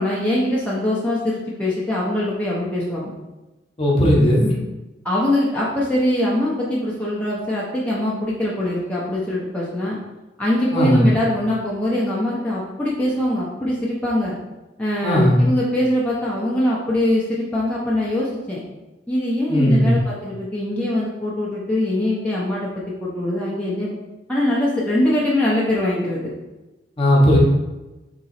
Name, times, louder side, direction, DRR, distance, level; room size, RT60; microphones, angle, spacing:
voice 1, 0.0-3.1 5.0-10.0 10.4-14.3 14.8-18.6 19.1-22.7 23.0-24.0 24.3-26.3, left 1 dB, 10° left, -8 dB, 0.7 m, -22 dB
voice 2, 3.8-4.5 10.7-11.1 15.0-15.4 19.5-19.9 27.0-27.4, equal, 30° left, -3 dB, 0.9 m, -16 dB
3.7 x 2.9 x 4.2 m, 1.1 s
head